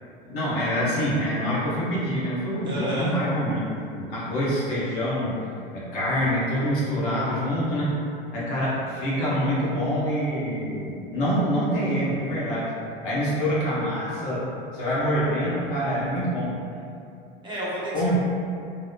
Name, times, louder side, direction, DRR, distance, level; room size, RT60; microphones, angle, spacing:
voice 1, 0.3-5.4 5.7-8.0 8.3-12.7 13.0-16.6 17.9-18.2, equal, 65° left, -8 dB, 0.9 m, -26 dB
voice 2, 2.6-3.1 17.4-18.2, right 1 dB, 15° right, -9 dB, 0.6 m, -30 dB
2.9 x 2.0 x 2.2 m, 2.5 s
figure-of-eight pair, 75°, 29 cm